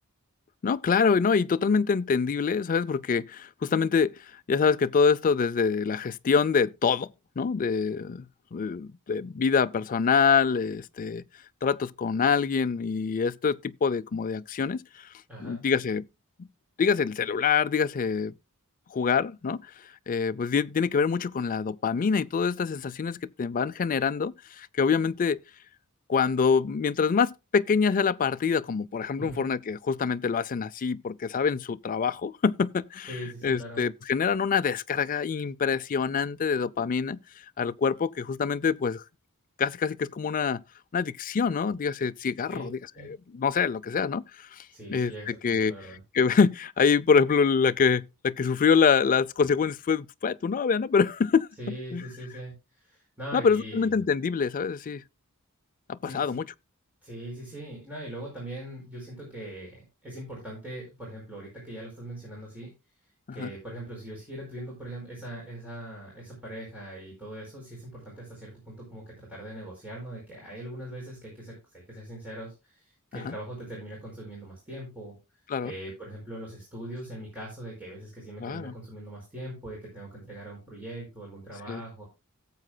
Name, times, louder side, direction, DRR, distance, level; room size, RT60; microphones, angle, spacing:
voice 1, 0.6-4.1 4.5-7.1 7.4-11.2 11.6-15.1 15.4-16.1 16.4-16.5 16.8-18.3 18.9-19.6 20.1-25.4 26.1-33.1 33.4-37.2 37.6-39.0 39.6-40.6 40.9-42.7 43.3-45.7 46.1-51.5 51.9-52.0 53.3-55.0 55.9-56.4 63.4-63.5 73.2-73.3 75.5-75.7 78.4-78.7 81.7-81.8, left 5 dB, 40° left, 0.4 m, -25 dB
voice 2, 15.3-15.6 29.2-29.4 33.1-33.9 42.5-42.7 42.9-43.1 44.7-46.0 51.6-53.9 56.0-56.4 57.0-62.7 63.3-75.2 75.6-82.0, right 1 dB, 5° right, 4.8 m, -41 dB
17.0 x 7.5 x 2.2 m
head